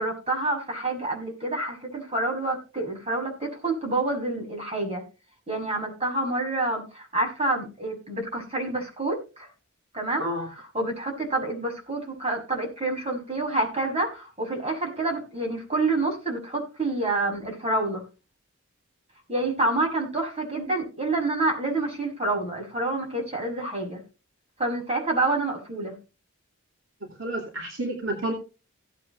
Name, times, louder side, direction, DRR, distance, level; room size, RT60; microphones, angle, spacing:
voice 1, 0.0-5.0 5.5-9.5 9.9-10.3 10.7-18.0 19.3-24.0 24.6-25.9, right 2 dB, 30° right, 2 dB, 5.8 m, -28 dB
voice 2, 27.2-28.3, right 1 dB, 65° right, 0 dB, 2.7 m, -30 dB
17.0 x 8.6 x 3.1 m, 0.32 s
head